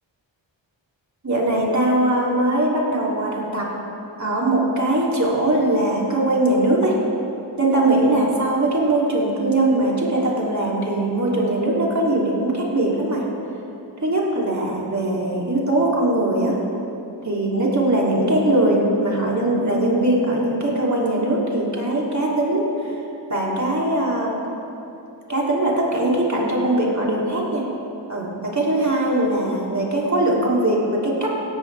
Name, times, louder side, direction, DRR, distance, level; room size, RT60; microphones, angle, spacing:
voice 1, 1.2-3.7 4.2-7.0 7.6-13.2 14.0-16.5 17.2-23.0 23.3-24.4 25.3-27.6 28.1-31.3, right 1 dB, 35° right, -4 dB, 3.0 m, -21 dB
16.5 x 14.0 x 3.4 m, 2.9 s
wide cardioid pair, 70°, 47 cm